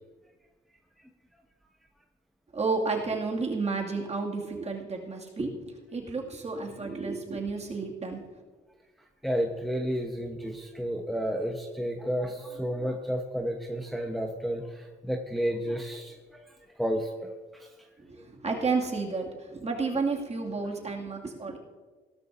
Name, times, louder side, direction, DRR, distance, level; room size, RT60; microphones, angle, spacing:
voice 1, 2.5-8.4 18.0-21.6, right 4 dB, 35° right, 0 dB, 2.2 m, -31 dB
voice 2, 9.2-16.5 16.8-17.7, equal, ahead, 1 dB, 1.0 m, -31 dB
16.5 x 13.0 x 2.6 m, 1.3 s
cardioid pair, 90°, 20 cm